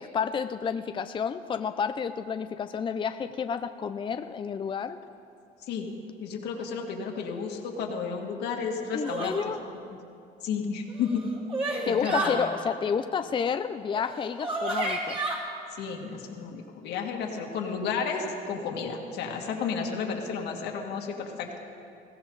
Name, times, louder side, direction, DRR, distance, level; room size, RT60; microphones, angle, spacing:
voice 1, 0.0-5.0 8.9-9.6 11.9-15.2, left 6 dB, 30° left, 9 dB, 0.5 m, -30 dB
voice 2, 6.2-9.5 9.9-10.0 10.4-11.3 11.9-12.5 15.8-21.6, left 5 dB, 80° left, 1 dB, 2.1 m, -32 dB
sound 1, 9.0-9.5 10.9-12.4 13.9-14.0 14.4-15.4, right 2 dB, 35° right, 3.2 m, -30 dB
21.0 x 16.5 x 4.0 m, 2.5 s
cardioid pair, 110°, 17 cm